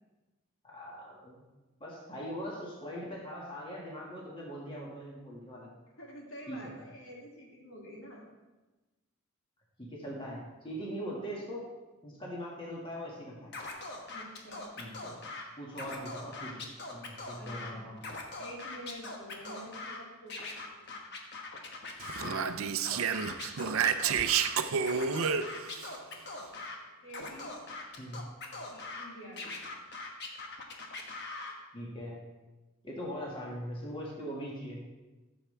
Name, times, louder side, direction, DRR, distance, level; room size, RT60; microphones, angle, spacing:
voice 1, 0.6-1.4 1.8-5.8 6.5-6.8 9.8-11.6 12.0-13.5 14.8-15.2 15.6-18.1 22.2-22.5 28.0-28.3 31.7-32.2 32.8-34.8, equal, 25° left, -4 dB, 1.9 m, -41 dB
voice 2, 6.0-8.2 14.1-14.7 17.4-17.9 18.4-21.0 22.2-22.6 26.1-26.4 27.0-27.6 27.9-29.6, equal, 70° left, -3 dB, 2.3 m, -49 dB
Scratching (performance technique), 13.5-15.4 15.7-17.7 18.0-20.0 20.3-22.4 22.8-24.5 24.8-26.8 27.1-29.0 29.4-31.5, left 3 dB, 55° left, 1.3 m, -41 dB
Speech, 22.0-25.9, right 7 dB, 80° right, 0.5 m, -30 dB
14.5 x 7.1 x 3.4 m, 1.2 s
head